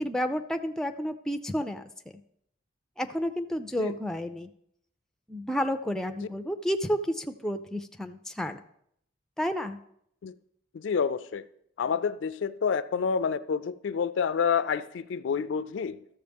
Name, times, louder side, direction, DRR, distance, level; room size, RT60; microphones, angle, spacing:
voice 1, 0.0-1.8 3.0-4.5 5.3-8.6 9.4-9.8, equal, 5° left, 0.3 m, -31 dB
voice 2, 10.7-11.4 11.8-16.0, left 6 dB, 70° left, 0.4 m, -28 dB
13.0 x 6.9 x 3.5 m
head